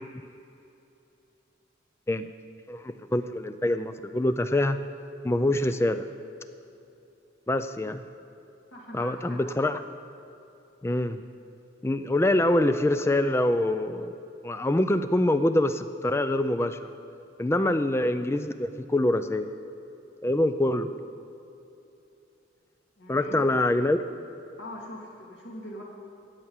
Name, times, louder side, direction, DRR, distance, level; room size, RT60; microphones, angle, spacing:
voice 1, 2.7-4.8 5.2-6.0 7.5-8.0 8.9-9.8 10.8-11.2 11.8-14.2 14.4-16.9 17.4-19.5 20.2-20.9 23.1-24.0, left 1 dB, 15° left, 10 dB, 0.4 m, -25 dB
voice 2, 8.7-9.4 23.0-23.4 24.6-25.8, left 1 dB, 70° left, -2 dB, 2.6 m, -42 dB
15.5 x 6.0 x 8.8 m, 2.9 s
head